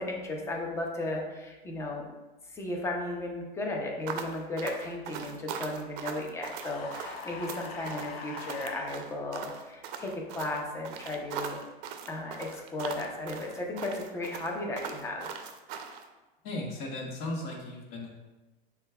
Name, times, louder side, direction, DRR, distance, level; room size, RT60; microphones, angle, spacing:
voice 1, 0.0-2.1 2.5-11.6 12.1-15.3, left 2 dB, 10° left, 0 dB, 0.5 m, -35 dB
sound 1, 4.1-16.0, right 7 dB, 60° right, 0.5 m, -40 dB
sound 2, 6.6-8.9, left 5 dB, 90° left, 0.5 m, -42 dB
voice 2, 16.4-18.1, left 2 dB, 50° left, 0 dB, 1.0 m, -36 dB
6.3 x 2.3 x 2.2 m, 1.1 s
hypercardioid pair, 125°, 30 cm